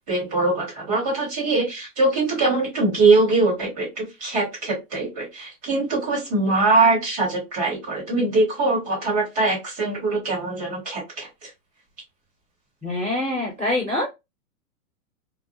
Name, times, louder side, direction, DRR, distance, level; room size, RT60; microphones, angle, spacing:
voice 1, 0.1-11.5, right 3 dB, 25° right, -4 dB, 1.3 m, -22 dB
voice 2, 12.8-14.1, left 1 dB, 5° right, -20 dB, 0.5 m, -25 dB
2.3 x 2.0 x 2.7 m, 0.23 s
hypercardioid pair, 180°, 45 cm